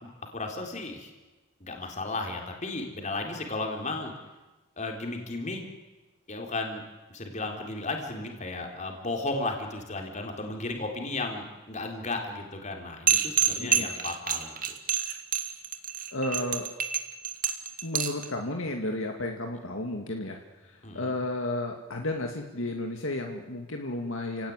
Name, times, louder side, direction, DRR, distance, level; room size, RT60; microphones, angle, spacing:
voice 1, 0.0-1.1 1.6-4.1 4.8-5.6 6.3-6.8 7.1-14.6 20.8-21.2, left 2 dB, 35° left, 3 dB, 4.0 m, -34 dB
sound 1, 13.1-18.3, right 9 dB, 40° right, 2.1 m, -27 dB
voice 2, 13.6-13.9 16.1-16.7 17.8-24.5, left 1 dB, 65° left, 3 dB, 2.3 m, -33 dB
30.0 x 18.0 x 9.8 m, 1.2 s
head